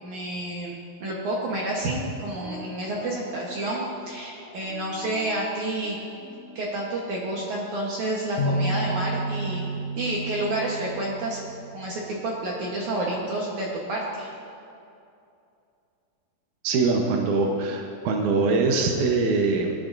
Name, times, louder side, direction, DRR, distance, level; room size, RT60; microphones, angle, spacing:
voice 1, 0.0-6.0 6.6-9.7 10.0-11.4 11.7-14.3, right 1 dB, 65° right, -4 dB, 2.0 m, -29 dB
sound 1, 2.2-6.6, left 6 dB, 65° left, 3.2 m, -45 dB
sound 2, 8.4-12.1, right 1 dB, 85° left, 1.5 m, -30 dB
voice 2, 16.6-19.7, right 3 dB, 85° right, 2 dB, 1.7 m, -23 dB
19.0 x 10.5 x 2.6 m, 2.6 s
omnidirectional pair, 4.8 m